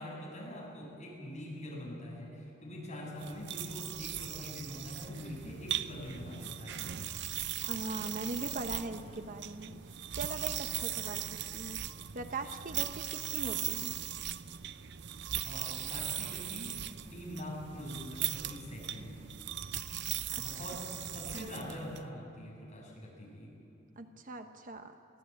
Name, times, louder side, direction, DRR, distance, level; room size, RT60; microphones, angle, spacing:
voice 1, 0.0-6.9 15.4-19.1 20.4-23.5, left 1 dB, 35° left, -3 dB, 7.4 m, -44 dB
sound 1, 3.2-22.0, right 11 dB, 60° right, 0.6 m, -39 dB
voice 2, 7.7-9.7 10.1-11.2 11.5-11.8 12.1-13.9 24.0-24.9, right 2 dB, 45° right, 7 dB, 1.0 m, -40 dB
22.5 x 16.0 x 8.7 m, 2.9 s
head